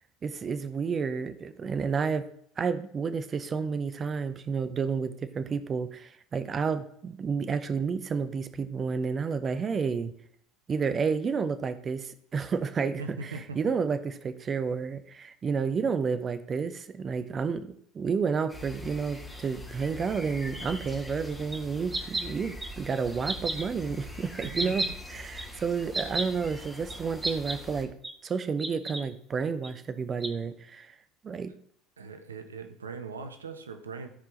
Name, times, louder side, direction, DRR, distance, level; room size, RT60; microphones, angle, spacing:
voice 1, 0.2-2.3 2.6-10.1 10.7-27.9 28.2-30.9 31.2-31.5, right 5 dB, 35° right, 12 dB, 0.7 m, -31 dB
voice 2, 13.0-13.6 24.6-24.9 32.0-34.1, right 4 dB, 90° right, 8 dB, 0.7 m, -40 dB
sound 1, 18.5-27.8, left 1 dB, ahead, 2.1 m, -43 dB
sound 2, 21.5-21.6 21.9-22.2 22.6-22.7 23.2-23.6 24.4-24.9 25.4-25.5 25.9-26.3 26.9-27.0 27.2-27.6 28.0-28.1 28.6-29.0 29.6-29.7 30.2-30.3, right 2 dB, 15° right, 1.1 m, -31 dB
13.5 x 4.8 x 3.7 m, 0.65 s
hypercardioid pair, 70°, 0 cm